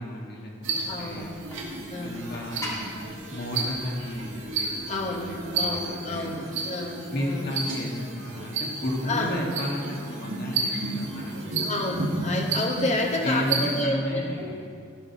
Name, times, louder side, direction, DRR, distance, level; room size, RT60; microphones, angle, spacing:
voice 1, 0.0-1.4 2.0-2.9 3.3-6.5 7.1-11.6 11.8-12.1 13.2-14.7, equal, 55° left, -2 dB, 1.9 m, -33 dB
sound 1, 0.6-13.8, right 3 dB, 85° right, 2.1 m, -32 dB
sound 2, 0.8-5.8, equal, 15° left, 1.9 m, -43 dB
voice 2, 0.9-1.3 1.9-2.2 4.9-7.5 9.1-9.4 11.6-14.5, left 2 dB, 35° left, 1 dB, 1.2 m, -30 dB
14.0 x 5.3 x 6.1 m, 2.3 s
head